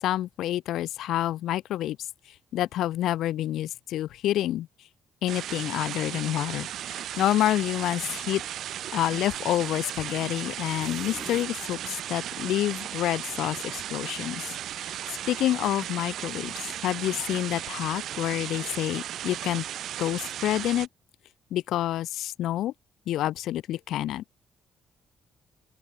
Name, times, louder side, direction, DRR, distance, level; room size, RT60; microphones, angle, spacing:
voice 1, 0.0-2.0 2.5-4.7 5.2-8.4 8.9-19.6 20.0-20.9 21.5-22.7 23.1-24.2, left 13 dB, 85° left, 0.7 m, -28 dB
sound 1, 5.3-20.9, right 11 dB, 75° right, 3.8 m, -36 dB
sound 2, 10.8-12.1, left 4 dB, 30° left, 4.8 m, -44 dB
open air
cardioid pair, 90°, 0 cm